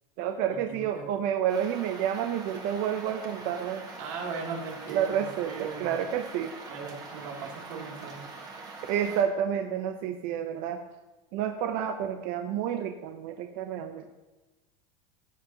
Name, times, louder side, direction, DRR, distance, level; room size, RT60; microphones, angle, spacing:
voice 1, 0.2-3.9 4.9-6.5 8.9-10.8 11.3-14.1, right 9 dB, 50° right, 6 dB, 0.7 m, -30 dB
voice 2, 0.7-1.1 4.0-5.1 5.4-6.0 6.7-8.3, right 5 dB, 70° right, -1 dB, 2.8 m, -38 dB
sound 1, 1.5-9.2, right 3 dB, 20° right, 1.8 m, -44 dB
16.0 x 7.9 x 2.9 m, 1.1 s
supercardioid pair, 140°, 17 cm